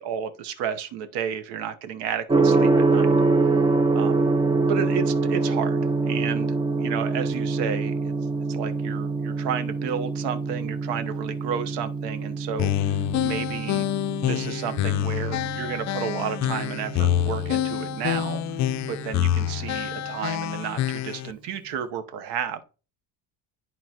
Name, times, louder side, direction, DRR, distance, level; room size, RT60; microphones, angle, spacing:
voice 1, 0.0-3.1 3.9-4.3 4.7-5.8 6.0-8.1 8.5-13.9 14.2-18.4 18.9-22.6, right 8 dB, 75° right, 1.1 m, -32 dB
Gong, 2.3-20.2, right 3 dB, 10° right, 0.7 m, -25 dB
sound 1, 12.6-21.3, left 12 dB, 45° left, 0.5 m, -27 dB
11.0 x 3.9 x 2.9 m
cardioid pair, 130°, 41 cm